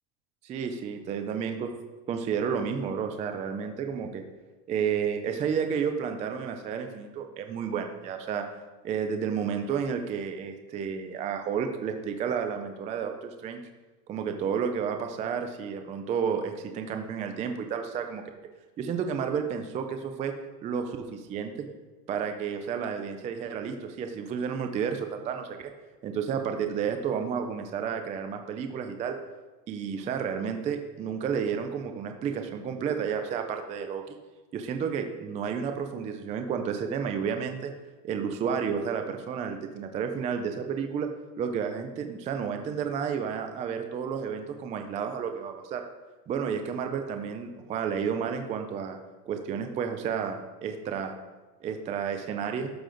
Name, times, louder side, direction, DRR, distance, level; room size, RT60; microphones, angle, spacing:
voice 1, 0.4-1.7 2.1-4.2 4.7-8.4 8.8-13.6 14.1-18.2 18.8-20.3 20.6-21.7 22.1-25.7 26.0-29.2 29.7-34.2 34.5-37.7 38.0-41.1 41.4-45.8 46.3-49.0 49.3-51.1 51.6-52.7, right 7 dB, 15° right, 6 dB, 0.3 m, -31 dB
12.5 x 6.6 x 3.8 m, 1.2 s
supercardioid pair, 135°, 50 cm